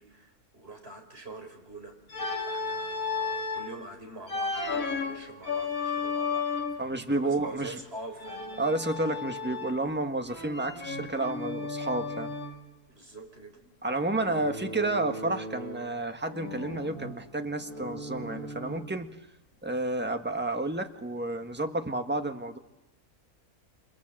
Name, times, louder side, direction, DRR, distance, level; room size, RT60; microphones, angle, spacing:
voice 1, 0.0-1.9 2.5-6.8 7.1-8.5 12.9-13.7, right 2 dB, 40° right, 3 dB, 5.2 m, -45 dB
Organ, 2.1-3.7 4.3-6.9 8.2-9.9 10.3-12.6 14.1-16.0 16.3-19.0, left 4 dB, 60° left, 3.0 m, -34 dB
voice 2, 6.8-7.7 8.6-12.3 13.8-19.1 19.6-22.6, right 2 dB, 5° right, 6 dB, 1.5 m, -31 dB
28.5 x 27.0 x 7.7 m, 0.91 s
omnidirectional pair, 1.6 m